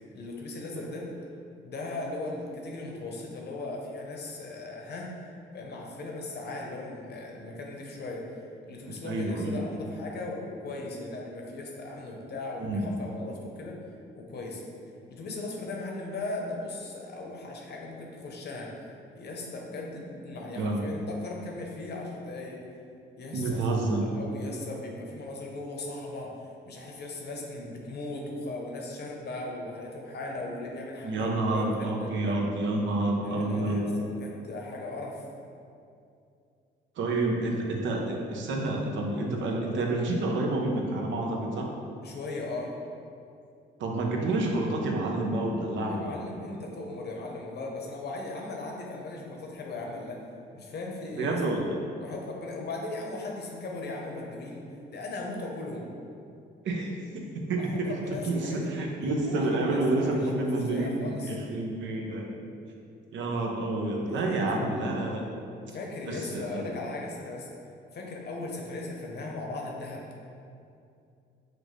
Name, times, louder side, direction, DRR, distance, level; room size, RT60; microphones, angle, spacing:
voice 1, 0.1-1.0 1.6-5.1 5.5-8.2 8.7-13.8 14.1-14.6 15.1-18.7 19.2-22.6 23.2-26.3 26.6-32.4 33.2-35.2 42.0-42.7 45.9-50.2 50.5-51.4 52.0-55.9 57.6-61.4 64.1-64.4 65.7-67.5 67.9-70.0, left 2 dB, 55° left, -1 dB, 0.8 m, -38 dB
voice 2, 8.9-9.6 12.6-12.9 20.6-20.8 23.3-24.0 31.0-33.9 37.0-41.7 43.8-46.1 51.1-51.8 56.6-57.9 58.2-62.4 63.1-65.2 66.1-66.6, right 2 dB, 70° right, 0 dB, 0.7 m, -29 dB
5.9 x 2.6 x 3.1 m, 2.5 s
cardioid pair, 90°, 20 cm